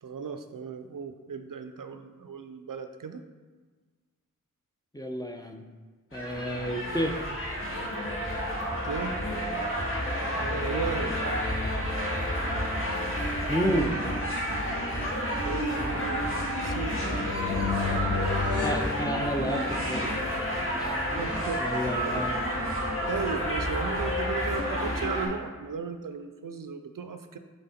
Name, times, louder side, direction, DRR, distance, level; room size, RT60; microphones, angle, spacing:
voice 1, 0.0-3.2 8.8-9.2 10.3-11.1 15.4-17.3 21.1-22.6 23.1-27.4, right 5 dB, 75° right, 9 dB, 0.5 m, -36 dB
voice 2, 4.9-5.6 6.1-7.2 13.5-14.0 18.6-20.1 20.8-20.9 21.6-22.5, equal, 10° left, 4 dB, 0.6 m, -30 dB
sound 1, 6.1-25.3, equal, 40° left, 1.5 m, -30 dB
sound 2, 16.8-19.8, left 5 dB, 65° left, 0.9 m, -32 dB
7.8 x 3.5 x 4.2 m, 1.4 s
wide cardioid pair, 45°, 33 cm